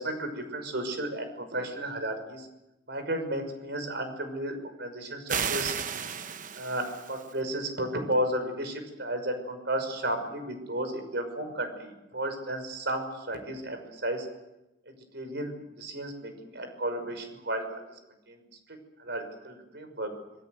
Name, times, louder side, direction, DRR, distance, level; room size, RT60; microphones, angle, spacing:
voice 1, 0.0-2.5 2.9-5.7 6.6-14.3 14.9-18.0 18.3-18.4 18.7-20.1, right 1 dB, 60° right, 6 dB, 5.9 m, -33 dB
sound 1, 5.3-7.3, right 7 dB, 40° right, 0.9 m, -33 dB
27.0 x 22.0 x 8.0 m, 0.95 s
head